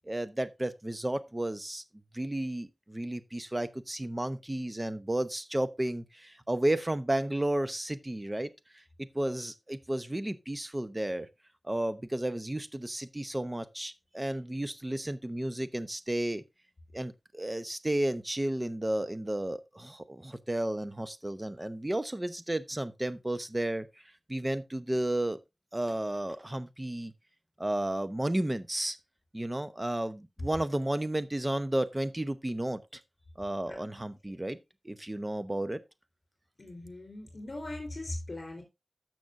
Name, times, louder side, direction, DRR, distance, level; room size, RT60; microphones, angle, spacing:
voice 1, 0.1-1.8 2.1-8.8 9.1-11.3 11.6-16.4 16.9-23.9 24.3-25.4 25.7-27.1 27.6-29.0 29.3-33.0 33.4-34.6 34.8-35.8, right 1 dB, 20° right, 0.8 m, -32 dB
voice 2, 36.6-38.6, left 2 dB, 45° left, 3.7 m, -40 dB
14.0 x 6.0 x 2.6 m
wide cardioid pair, 85°, 0 cm